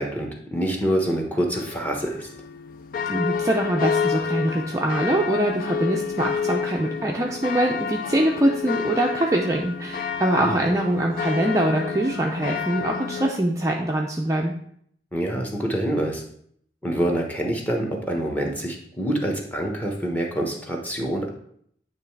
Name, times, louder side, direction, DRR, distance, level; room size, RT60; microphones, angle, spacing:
voice 1, 0.0-2.3 10.4-10.6 15.1-16.2 16.8-21.3, right 1 dB, 10° left, 1 dB, 1.0 m, -26 dB
sound 1, 1.5-13.3, left 6 dB, 50° left, 0.4 m, -29 dB
voice 2, 3.1-14.5, right 1 dB, 20° right, 0 dB, 0.5 m, -23 dB
9.1 x 3.2 x 4.6 m, 0.66 s
head